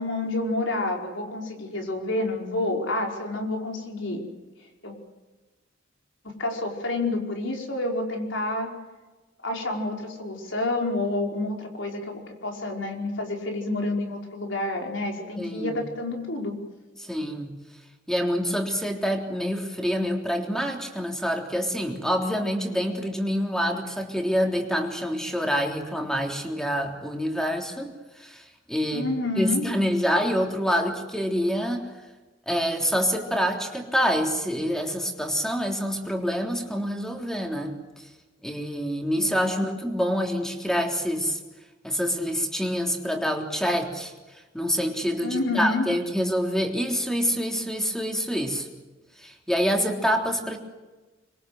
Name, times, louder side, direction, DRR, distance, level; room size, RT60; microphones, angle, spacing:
voice 1, 0.0-4.2 4.8-5.0 6.2-8.7 9.4-16.6 28.9-29.6 39.1-39.5 45.2-45.9, left 2 dB, 70° left, 2 dB, 5.1 m, -29 dB
voice 2, 15.4-15.8 17.0-17.6 18.1-29.1 29.4-31.9 32.4-38.1 38.4-41.4 41.8-44.1 44.5-48.7 49.2-50.6, equal, 5° left, 2 dB, 3.4 m, -26 dB
25.5 x 23.0 x 7.9 m, 1.2 s
head